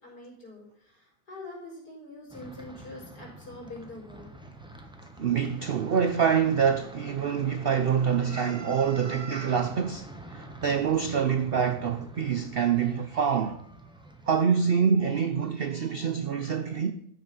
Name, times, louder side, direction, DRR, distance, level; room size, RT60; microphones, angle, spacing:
voice 1, 0.0-4.3, left 2 dB, 70° left, 4.9 m, -44 dB
sound 1, 2.3-14.4, right 1 dB, 5° right, 1.0 m, -46 dB
voice 2, 5.2-13.6 14.3-16.9, right 7 dB, 70° right, 0.5 m, -26 dB
12.5 x 7.2 x 5.5 m
omnidirectional pair, 1.8 m